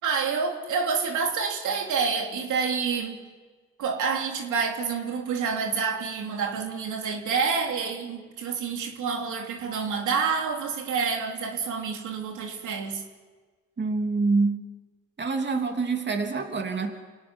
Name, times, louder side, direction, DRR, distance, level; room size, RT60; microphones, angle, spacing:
voice 1, 0.0-3.2 3.8-13.0, right 5 dB, 75° right, 2 dB, 3.3 m, -28 dB
voice 2, 13.8-14.6 15.2-16.9, right 4 dB, 35° right, 3 dB, 3.1 m, -26 dB
29.0 x 17.0 x 9.8 m, 1.4 s
cardioid pair, 90°, 30 cm